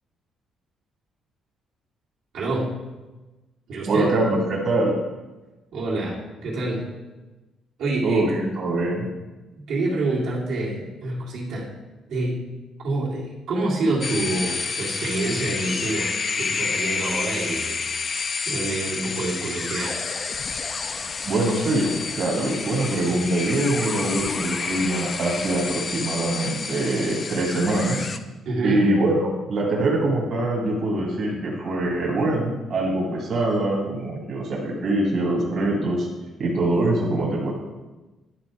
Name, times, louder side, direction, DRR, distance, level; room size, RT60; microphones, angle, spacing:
voice 1, 2.3-2.7 3.7-4.1 5.7-6.9 7.8-8.2 9.6-11.7 12.1-12.4 12.8-20.0 28.5-28.9, right 2 dB, 75° right, -5 dB, 2.2 m, -27 dB
voice 2, 3.8-4.9 8.0-9.1 21.2-28.1 28.6-36.1 36.4-37.5, right 2 dB, 50° right, -3 dB, 1.7 m, -23 dB
sound 1, 14.0-28.2, left 4 dB, 35° left, 0.4 m, -29 dB
11.0 x 3.8 x 4.8 m, 1.1 s
cardioid pair, 125°, 0 cm